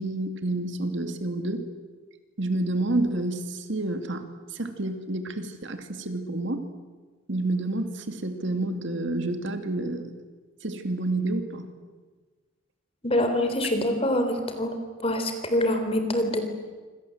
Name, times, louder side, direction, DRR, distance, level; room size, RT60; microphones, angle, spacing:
voice 1, 0.0-1.7 2.4-6.7 7.3-10.1 10.6-11.7, right 2 dB, 60° right, 7 dB, 2.5 m, -29 dB
voice 2, 13.0-14.8 15.0-16.5, left 1 dB, 25° left, 7 dB, 3.7 m, -25 dB
26.5 x 26.5 x 7.9 m, 1.4 s
head